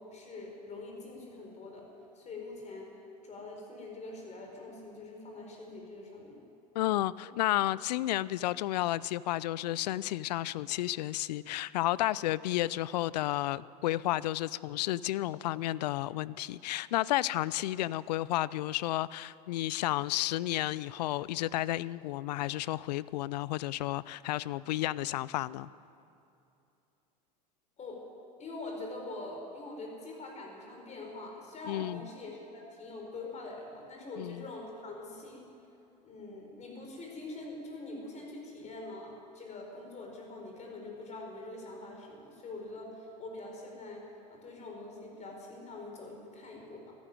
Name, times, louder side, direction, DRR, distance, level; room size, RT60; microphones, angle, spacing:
voice 1, 0.0-1.9 2.1-2.9 3.2-6.4 7.2-7.3 27.8-28.0 28.4-35.5 36.0-47.0, left 2 dB, 35° left, 0 dB, 4.9 m, -44 dB
voice 2, 6.7-25.7 31.7-32.1 34.2-34.4, left 15 dB, 80° left, 20 dB, 0.4 m, -32 dB
13.5 x 11.5 x 9.2 m, 2.7 s
hypercardioid pair, 90°, 21 cm